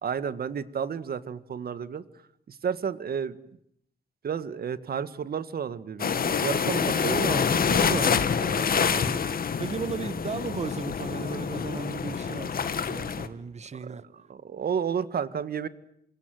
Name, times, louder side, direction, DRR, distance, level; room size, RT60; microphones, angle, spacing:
voice 1, 0.0-2.0 2.5-3.4 4.2-7.4 7.9-8.0 8.7-8.9 13.8-14.0 14.3-15.7, right 7 dB, 70° right, 1.8 m, -32 dB
sound 1, 6.0-13.3, left 6 dB, 65° left, 2.1 m, -26 dB
voice 2, 7.0-14.0, right 5 dB, 45° right, 1.3 m, -36 dB
28.5 x 26.5 x 7.8 m
wide cardioid pair, 155°, 16 cm